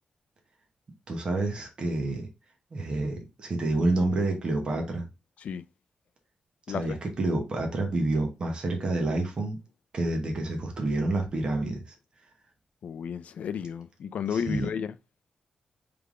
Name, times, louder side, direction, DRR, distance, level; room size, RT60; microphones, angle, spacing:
voice 1, 1.1-2.3 2.7-5.0 6.7-9.6 9.9-11.8 14.3-14.7, right 2 dB, 35° right, 0.9 m, -28 dB
voice 2, 6.7-7.0 12.8-14.9, left 7 dB, 60° left, 0.3 m, -32 dB
3.5 x 3.3 x 3.6 m
wide cardioid pair, 175°, 3 cm